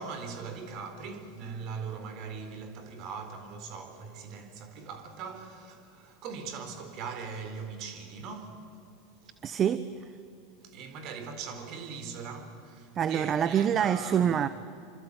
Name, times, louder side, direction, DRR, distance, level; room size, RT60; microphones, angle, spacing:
voice 1, 0.0-8.6 9.2-9.3 10.6-14.4, right 5 dB, 50° right, 4.0 m, -40 dB
voice 2, 9.4-10.1 12.9-14.5, right 8 dB, 35° right, 0.9 m, -26 dB
27.5 x 26.0 x 8.4 m
figure-of-eight pair, 80°, 0 cm